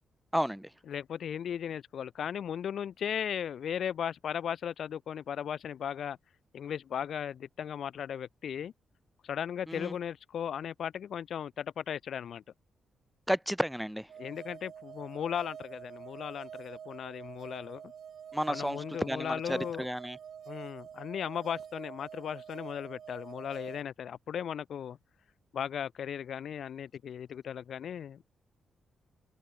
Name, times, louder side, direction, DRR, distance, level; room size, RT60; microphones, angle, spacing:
voice 1, 0.3-0.7 9.7-10.0 13.3-14.1 18.3-20.2, equal, ahead, 0.4 m, -32 dB
voice 2, 0.9-6.2 6.5-8.7 9.2-12.4 14.2-17.8 18.5-19.9 20.5-25.0 25.5-28.2, left 8 dB, 65° left, 1.0 m, -37 dB
sound 1, 14.1-23.8, right 8 dB, 60° right, 3.5 m, -47 dB
open air
cardioid pair, 120°, 0 cm